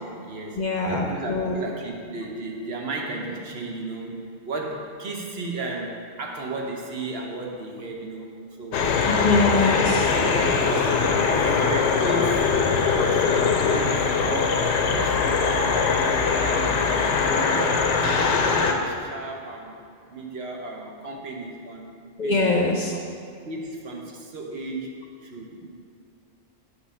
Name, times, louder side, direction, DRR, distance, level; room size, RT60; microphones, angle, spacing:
voice 1, 0.0-8.3 8.6-8.9 10.1-12.6 12.9-15.8 16.1-19.8 20.1-21.9 22.2-22.7 23.4-24.9 25.2-25.7, right 2 dB, 65° right, 0 dB, 1.1 m, -34 dB
voice 2, 0.6-1.6 9.0-10.1 22.2-22.9, left 3 dB, 45° left, 1 dB, 0.7 m, -23 dB
sound 1, 8.7-18.7, left 5 dB, 90° left, 1.0 m, -22 dB
7.9 x 3.2 x 6.2 m, 2.5 s
omnidirectional pair, 1.1 m